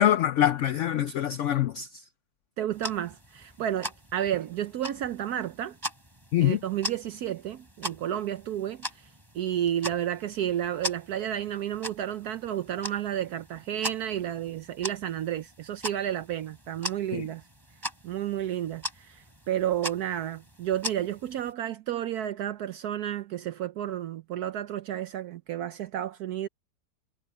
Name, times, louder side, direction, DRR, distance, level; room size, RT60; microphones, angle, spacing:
voice 1, 0.0-2.0 6.3-6.6 17.1-17.3, left 11 dB, 75° left, 0.7 m, -24 dB
voice 2, 2.6-5.8 6.4-9.1 9.3-17.4 18.0-26.5, right 11 dB, 70° right, 1.1 m, -31 dB
sound 1, 2.7-21.5, equal, 10° right, 5.4 m, -41 dB
omnidirectional pair, 1.8 m